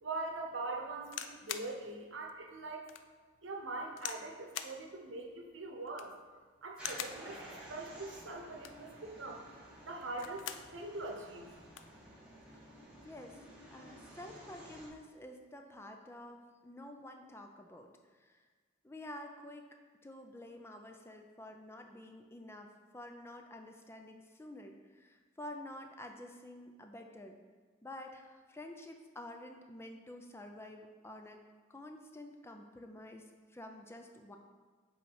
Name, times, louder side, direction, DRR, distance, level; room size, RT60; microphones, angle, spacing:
voice 1, 0.0-2.9 3.4-6.1 6.6-7.4 7.7-9.4 9.9-10.5 10.7-11.4, right 2 dB, 85° right, 2 dB, 1.0 m, -42 dB
sound 1, 1.0-1.7 2.3-2.4 2.9-3.1 4.0-4.3 4.5-4.8 5.8-6.2 6.8-7.2 8.4-8.9 10.0-10.7 11.1-11.2 11.4-11.9 12.8-13.0, left 9 dB, 80° left, 0.4 m, -43 dB
sound 2, 6.8-14.9, right 1 dB, 5° right, 1.2 m, -53 dB
voice 2, 13.0-13.4 13.7-18.4 18.8-19.6 20.0-27.4 27.8-31.4 31.7-34.4, left 1 dB, 15° left, 4 dB, 0.4 m, -49 dB
7.9 x 3.2 x 4.8 m, 1.5 s
head